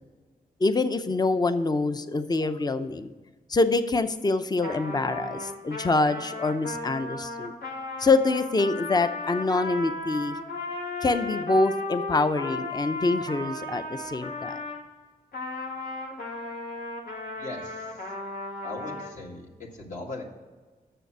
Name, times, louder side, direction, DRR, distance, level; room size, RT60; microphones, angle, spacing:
voice 1, 0.6-3.1 3.5-7.5 8.0-10.4 11.0-14.6, left 3 dB, 25° left, 11 dB, 0.6 m, -25 dB
Trumpet, 4.6-14.8 15.3-19.1, left 2 dB, 70° left, 2.0 m, -35 dB
voice 2, 17.4-17.8 18.6-20.2, left 2 dB, 55° left, -3 dB, 1.9 m, -39 dB
6.8 x 6.8 x 6.1 m, 1.3 s
cardioid pair, 75°, 16 cm